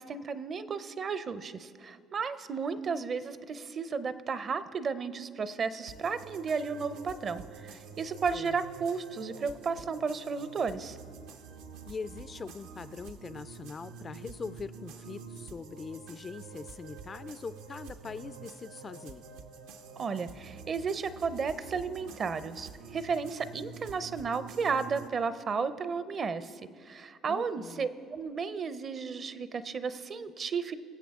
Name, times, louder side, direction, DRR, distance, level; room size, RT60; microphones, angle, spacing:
voice 1, 0.0-11.0 20.0-30.8, right 5 dB, 40° right, 14 dB, 0.5 m, -33 dB
sound 1, 5.9-25.1, right 5 dB, 85° right, 0.7 m, -47 dB
voice 2, 11.9-19.2 27.3-27.9, left 5 dB, 30° left, 15 dB, 0.3 m, -42 dB
23.0 x 7.8 x 3.6 m, 2.2 s
cardioid pair, 105°, 0 cm